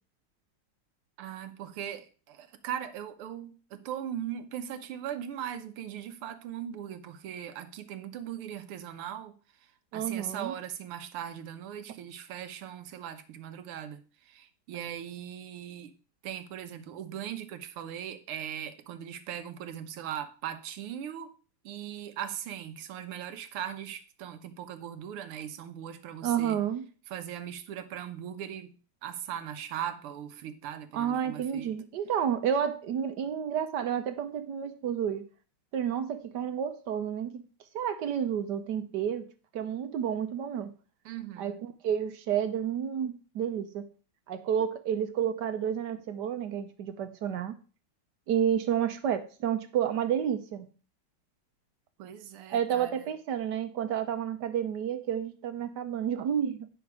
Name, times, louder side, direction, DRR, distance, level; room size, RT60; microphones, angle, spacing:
voice 1, 1.2-9.3 9.6-15.9 16.2-21.3 21.6-26.6 27.1-31.7 41.1-41.6 52.0-53.1, right 10 dB, 90° right, 1.8 m, -39 dB
voice 2, 9.9-10.5 26.2-26.8 30.9-35.3 35.7-37.5 37.7-39.3 39.5-40.7 41.4-43.8 44.3-47.5 48.3-50.7 52.5-56.7, right 9 dB, 65° right, 1.1 m, -30 dB
9.7 x 6.0 x 4.7 m
omnidirectional pair, 2.4 m